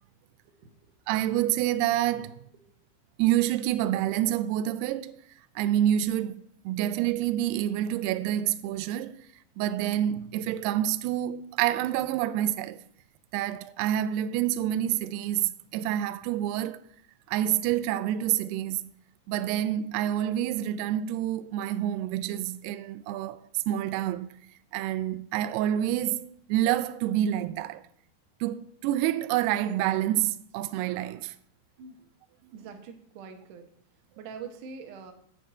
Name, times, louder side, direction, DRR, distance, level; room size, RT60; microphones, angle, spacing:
voice 1, 0.4-1.0 31.8-32.0 32.5-33.7 34.2-35.1, right 6 dB, 70° right, 2.0 m, -44 dB
voice 2, 1.1-2.4 3.2-5.2 5.6-9.2 9.6-12.8 13.3-16.8 17.3-18.9 19.3-24.3 24.7-27.8 28.4-31.3, right 12 dB, 90° right, 2.3 m, -28 dB
9.1 x 5.8 x 8.0 m
omnidirectional pair, 5.3 m